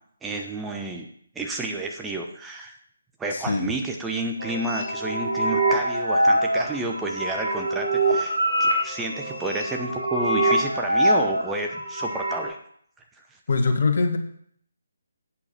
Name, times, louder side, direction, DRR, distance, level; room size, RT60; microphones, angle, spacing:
voice 1, 0.2-1.1 1.3-2.8 3.2-12.6, right 2 dB, 10° right, 2 dB, 0.8 m, -30 dB
voice 2, 3.3-3.7 13.5-14.2, left 4 dB, 55° left, 6 dB, 1.5 m, -22 dB
sound 1, 4.4-12.5, right 1 dB, 90° right, 2.9 m, -24 dB
8.5 x 6.6 x 5.6 m, 0.64 s
figure-of-eight pair, 145°, 0 cm